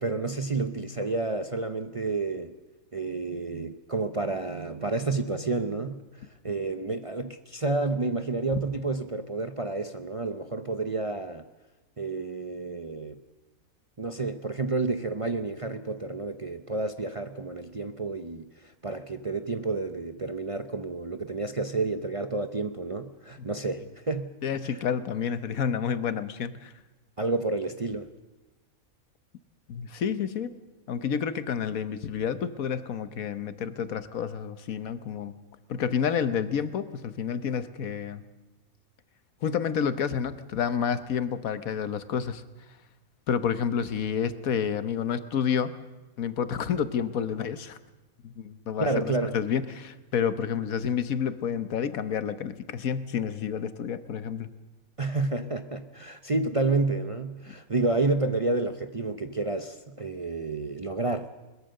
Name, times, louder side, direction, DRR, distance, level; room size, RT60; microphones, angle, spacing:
voice 1, 0.0-2.5 2.9-11.5 12.0-13.2 14.0-24.3 24.6-24.8 27.2-28.1 48.8-49.4 55.0-61.3, right 3 dB, 30° right, 8 dB, 0.6 m, -30 dB
voice 2, 24.4-26.7 29.7-30.5 30.9-35.4 35.7-38.2 39.4-42.4 43.3-45.7 46.2-47.8 48.2-54.5 57.5-57.6, left 7 dB, 75° left, 12 dB, 1.4 m, -29 dB
21.5 x 20.5 x 6.5 m, 1.1 s
omnidirectional pair, 1.5 m